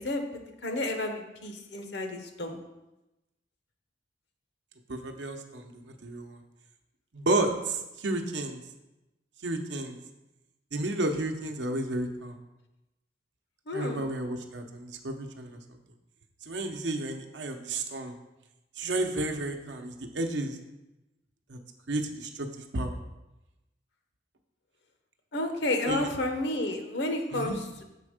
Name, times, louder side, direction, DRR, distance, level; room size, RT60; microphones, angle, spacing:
voice 1, 0.0-2.6 13.7-14.1 25.3-27.8, left 1 dB, 70° left, 5 dB, 0.9 m, -31 dB
voice 2, 4.9-6.4 7.1-8.6 9.4-10.0 10.7-12.4 13.7-15.6 16.4-18.2 18.8-20.6 21.5-21.6 21.9-23.0 25.9-26.0 27.3-27.6, right 2 dB, 85° right, 5 dB, 0.8 m, -32 dB
6.8 x 4.3 x 4.9 m, 0.97 s
head